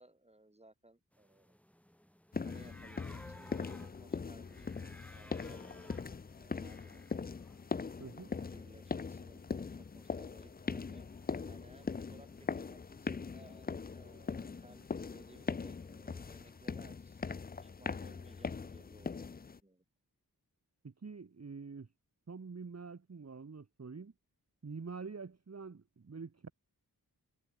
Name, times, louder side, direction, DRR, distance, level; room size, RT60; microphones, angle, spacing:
voice 1, 0.0-1.6 2.4-3.5 3.8-5.6 6.3-7.1 8.4-11.1 11.5-19.8, right 1 dB, 15° right, 2.1 m, -61 dB
Czech Bohemia Deer Distant, 1.1-16.6, equal, 5° left, 2.6 m, -61 dB
Footsteps stone + sneaker, 2.3-19.6, left 5 dB, 25° left, 0.4 m, -41 dB
voice 2, 8.0-8.4 20.8-21.9 22.3-24.1 24.6-26.5, right 4 dB, 40° right, 1.0 m, -46 dB
wide cardioid pair, 45°, 39 cm